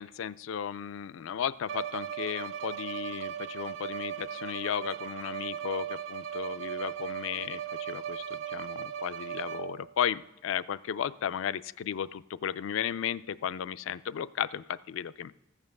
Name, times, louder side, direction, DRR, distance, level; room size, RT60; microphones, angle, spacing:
voice 1, 0.0-15.3, left 8 dB, 65° left, 17 dB, 0.3 m, -34 dB
Bowed string instrument, 1.7-9.9, right 9 dB, 60° right, 0.4 m, -37 dB
14.5 x 7.3 x 6.5 m, 0.94 s
head